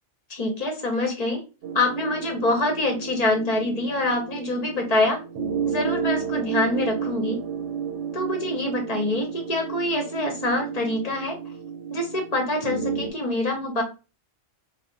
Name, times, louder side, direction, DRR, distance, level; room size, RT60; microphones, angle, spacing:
voice 1, 0.3-1.4 1.7-5.2 5.7-7.4 8.1-11.4 11.9-13.8, left 2 dB, 40° left, 2 dB, 0.6 m, -25 dB
sound 1, 1.6-13.1, right 7 dB, 75° right, 1.0 m, -32 dB
2.4 x 2.0 x 3.7 m, 0.31 s
omnidirectional pair, 1.3 m